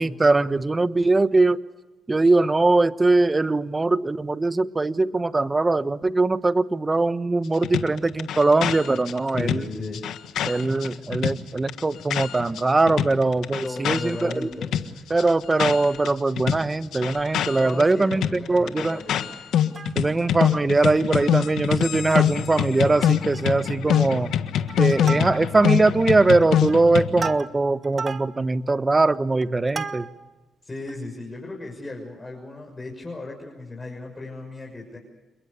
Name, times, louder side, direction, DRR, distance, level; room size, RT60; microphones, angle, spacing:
voice 1, 0.0-1.6 2.1-9.6 10.4-14.4 15.1-19.0 19.9-24.3 24.8-30.0, right 3 dB, 25° right, 14 dB, 1.2 m, -21 dB
sound 1, 7.6-12.6 12.9-16.1 16.4-27.3, left 10 dB, 80° left, 1.5 m, -25 dB
voice 2, 9.3-10.0 12.9-15.0 17.6-19.3 25.0-25.3 30.6-35.0, left 2 dB, 25° left, 0 dB, 6.4 m, -36 dB
Plucked string instrument, 19.5-20.3 20.8-20.9 21.1-21.3 21.8-22.4 22.8-22.9 23.2-23.6 23.9-24.3 24.7-25.7 26.3-30.4 30.9-31.0, right 5 dB, 45° right, 1.3 m, -36 dB
28.5 x 22.0 x 6.8 m, 1.1 s
supercardioid pair, 65°, 0 cm